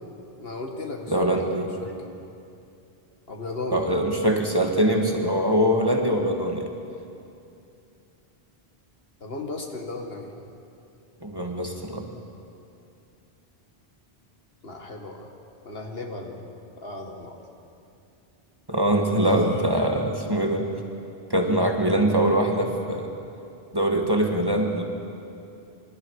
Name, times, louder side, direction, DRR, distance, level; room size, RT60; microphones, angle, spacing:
voice 1, 0.4-1.9 3.3-3.9 9.2-10.3 14.6-15.3 15.6-16.5 16.8-17.4 19.2-19.7, left 3 dB, 70° left, 2 dB, 2.3 m, -35 dB
voice 2, 1.1-1.7 3.7-6.7 11.2-12.0 18.7-20.7 21.3-23.1 23.7-24.8, right 1 dB, 20° right, 1 dB, 1.9 m, -23 dB
26.0 x 25.5 x 4.9 m, 2.6 s
omnidirectional pair, 1.0 m